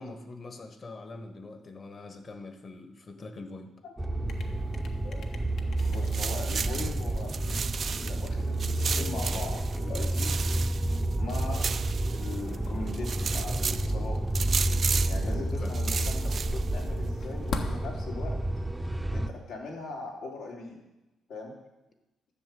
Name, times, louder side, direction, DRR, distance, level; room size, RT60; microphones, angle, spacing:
voice 1, 0.0-3.7 15.2-15.7, left 2 dB, 40° left, 7 dB, 1.5 m, -43 dB
sound 1, 4.0-19.3, right 1 dB, 10° right, 0.7 m, -30 dB
sound 2, 4.3-19.0, left 4 dB, 65° left, 1.4 m, -45 dB
voice 2, 5.6-7.6 7.9-10.4 11.2-11.7 12.1-14.2 15.0-18.4 19.1-20.8 21.3-21.5, left 3 dB, 80° left, -2 dB, 3.3 m, -40 dB
sound 3, 5.8-8.3 8.6-12.6 12.9-13.9 14.3-15.3 15.6-16.8, right 6 dB, 45° right, 0.4 m, -34 dB
12.0 x 6.9 x 7.7 m, 1.0 s
cardioid pair, 90°, 0 cm